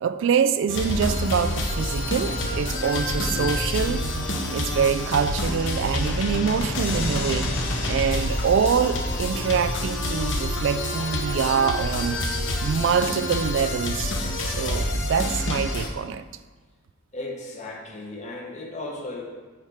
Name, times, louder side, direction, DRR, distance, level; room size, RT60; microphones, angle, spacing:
voice 1, 0.0-4.0 4.5-7.5 7.9-12.2 12.6-14.2 14.4-16.2, right 6 dB, 65° right, 12 dB, 0.3 m, -25 dB
sound 1, 0.7-15.9, left 1 dB, 65° left, 0.9 m, -27 dB
voice 2, 17.1-19.3, left 2 dB, 35° left, -1 dB, 1.2 m, -35 dB
6.5 x 4.4 x 4.9 m, 1.3 s
head